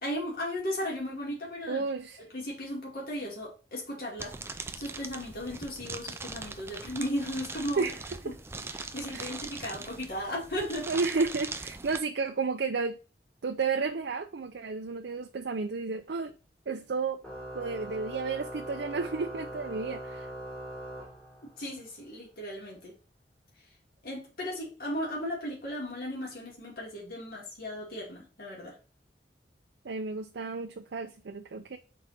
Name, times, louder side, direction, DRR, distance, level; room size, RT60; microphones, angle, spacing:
voice 1, 0.0-1.9 2.3-7.9 8.6-10.9 21.6-22.9 24.0-28.7, equal, 55° left, 2.4 m, -36 dB
voice 2, 1.7-2.2 7.8-8.0 8.2-8.3 9.1-9.3 10.9-13.0 13.4-16.3 16.7-17.2 17.5-20.3 29.8-31.8, right 4 dB, 75° right, 0.5 m, -32 dB
sound 1, 4.2-12.0, right 3 dB, 15° right, 0.4 m, -41 dB
Organ, 17.2-21.7, equal, 10° left, 1.7 m, -41 dB
4.6 x 4.1 x 5.8 m
head